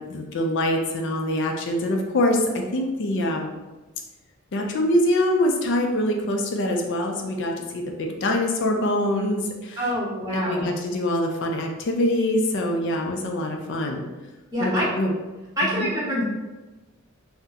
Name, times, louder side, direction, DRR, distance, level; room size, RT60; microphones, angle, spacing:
voice 1, 0.0-3.5 4.5-9.8 10.3-14.1 14.6-15.1 15.8-15.9, left 1 dB, 55° left, 2 dB, 0.4 m, -24 dB
voice 2, 9.8-10.7 14.5-14.9 15.6-16.2, equal, 15° right, -6 dB, 1.0 m, -26 dB
3.6 x 2.1 x 2.8 m, 1.1 s
head